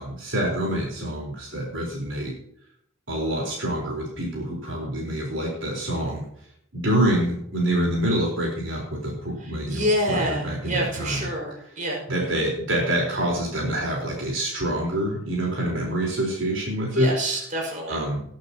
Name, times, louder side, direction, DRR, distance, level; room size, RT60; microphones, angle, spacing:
voice 1, 0.0-2.3 3.1-6.2 6.7-11.3 12.1-17.1 17.9-18.2, right 1 dB, 70° right, -1 dB, 4.3 m, -26 dB
voice 2, 9.4-12.4 16.9-18.0, equal, 40° right, -1 dB, 5.3 m, -28 dB
19.5 x 9.3 x 2.9 m, 0.72 s
head